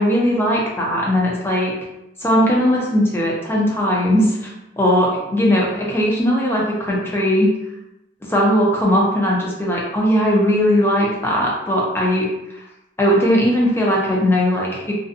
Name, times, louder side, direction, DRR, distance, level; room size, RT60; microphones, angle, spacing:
voice 1, 0.0-1.7 2.2-4.5 4.8-7.5 8.3-12.3 13.0-14.9, equal, 15° left, -4 dB, 0.5 m, -18 dB
2.5 x 2.2 x 2.6 m, 0.90 s
head